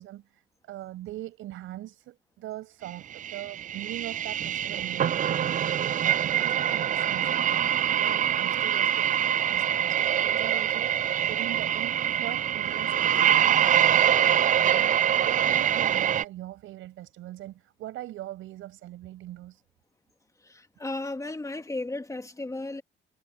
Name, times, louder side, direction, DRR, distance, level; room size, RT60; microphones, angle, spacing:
voice 1, 0.0-7.3 8.0-13.9 14.6-14.9 15.2-19.6, right 15 dB, 90° right, 6.6 m, -41 dB
sound 1, 3.1-16.2, right 10 dB, 40° right, 0.4 m, -24 dB
voice 2, 20.4-22.8, left 2 dB, 15° left, 1.7 m, -34 dB
cardioid pair, 90°, 20 cm